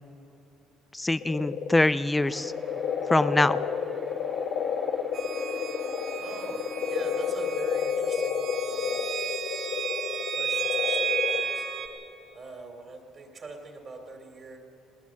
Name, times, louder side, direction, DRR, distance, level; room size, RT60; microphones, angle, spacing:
voice 1, 0.9-2.5 3.1-3.6, left 2 dB, 10° left, 15 dB, 0.4 m, -24 dB
sound 1, 1.2-11.4, left 7 dB, 75° left, 1.3 m, -31 dB
sound 2, 2.2-7.6, right 2 dB, 15° right, 1.4 m, -45 dB
sound 3, 5.1-11.9, right 7 dB, 60° right, 2.9 m, -33 dB
voice 2, 6.1-9.1 9.6-9.9 10.4-11.6 12.3-14.6, right 3 dB, 35° right, 3 dB, 2.7 m, -42 dB
20.0 x 18.5 x 7.2 m, 3.0 s
cardioid pair, 125°, 0 cm